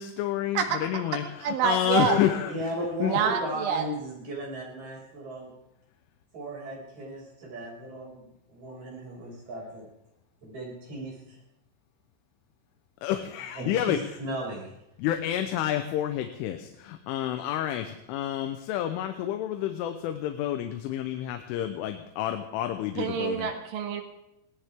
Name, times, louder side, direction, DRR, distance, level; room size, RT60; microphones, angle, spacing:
voice 1, 0.0-2.6 3.0-3.2 13.0-14.0 15.0-23.5, left 11 dB, 90° left, 7 dB, 3.5 m, -29 dB
voice 2, 1.4-2.2 3.0-3.8 23.0-24.0, right 8 dB, 80° right, 4 dB, 4.3 m, -27 dB
voice 3, 2.4-5.5 6.3-9.9 10.4-11.4 13.1-13.2 13.5-14.7, right 1 dB, 40° right, -3 dB, 7.4 m, -36 dB
21.5 x 18.0 x 3.7 m, 0.85 s
omnidirectional pair, 5.5 m